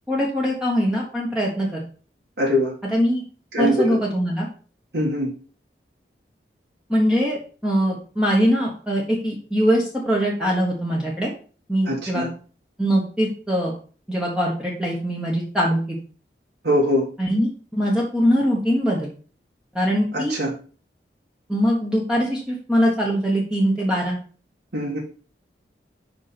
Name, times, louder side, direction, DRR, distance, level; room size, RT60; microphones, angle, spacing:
voice 1, 0.1-1.8 2.8-3.2 3.6-4.5 6.9-11.3 11.7-12.3 12.8-13.7 14.1-16.0 17.2-19.1 19.7-20.4 21.5-24.2, equal, 5° right, -4 dB, 1.3 m, -22 dB
voice 2, 2.4-2.7 3.5-4.0 4.9-5.3 11.9-12.3 16.6-17.1 20.1-20.5 24.7-25.0, equal, 80° right, -3 dB, 2.0 m, -22 dB
5.4 x 4.9 x 5.8 m, 0.39 s
head